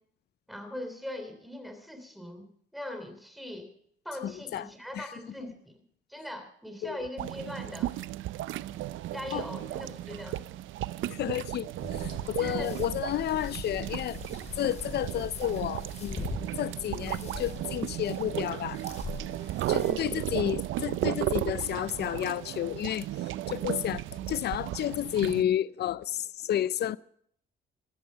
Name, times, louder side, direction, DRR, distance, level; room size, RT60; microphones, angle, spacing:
voice 1, 0.5-3.7 4.0-5.7 6.1-8.0 9.1-10.4 12.4-12.7 19.6-20.2, left 1 dB, ahead, 3.1 m, -41 dB
voice 2, 4.2-5.1 6.8-7.1 9.3-9.5 11.1-14.2 14.5-16.3 16.6-18.8 19.7-27.0, left 11 dB, 55° left, 0.5 m, -31 dB
sound 1, 7.2-25.4, right 14 dB, 80° right, 0.5 m, -35 dB
sound 2, 11.8-19.9, left 3 dB, 35° left, 5.1 m, -42 dB
14.5 x 13.5 x 5.6 m
cardioid pair, 90°, 20 cm